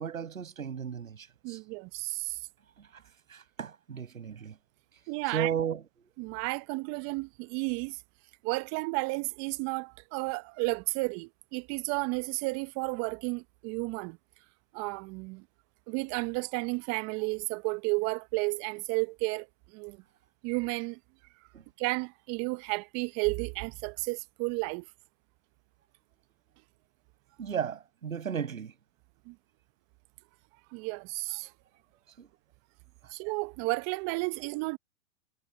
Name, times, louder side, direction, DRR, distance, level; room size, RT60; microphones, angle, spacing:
voice 1, 0.0-1.6 3.3-4.5 5.3-5.8 21.5-21.6 27.4-28.7 32.2-32.3, right 8 dB, 85° right, 6.1 m, -34 dB
voice 2, 1.4-2.4 5.1-5.5 6.2-8.0 8.4-14.2 14.7-15.4 15.9-19.5 19.7-20.0 20.4-21.0 21.8-24.8 29.3-29.4 30.7-31.5 33.1-34.8, right 27 dB, 40° right, 1.0 m, -32 dB
hypercardioid pair, 110°, 40 cm